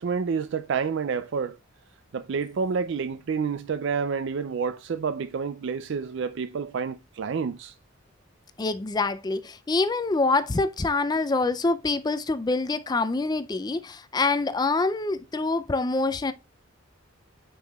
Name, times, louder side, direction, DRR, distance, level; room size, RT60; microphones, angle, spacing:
voice 1, 0.0-1.6 2.1-7.7, right 5 dB, 60° right, 0.3 m, -29 dB
voice 2, 8.6-16.3, left 3 dB, 20° left, 0.3 m, -25 dB
9.0 x 5.5 x 2.3 m
head